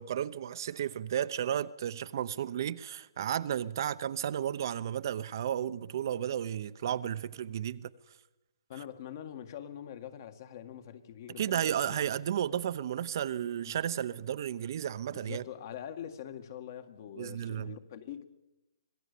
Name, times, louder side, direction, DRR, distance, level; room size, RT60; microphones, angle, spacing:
voice 1, 0.0-7.9 11.4-15.4 17.2-17.7, right 10 dB, 50° right, 0.8 m, -33 dB
voice 2, 8.7-12.0 13.7-13.8 15.1-18.2, left 10 dB, 45° left, 1.9 m, -44 dB
25.5 x 17.5 x 6.9 m
hypercardioid pair, 145°, 2 cm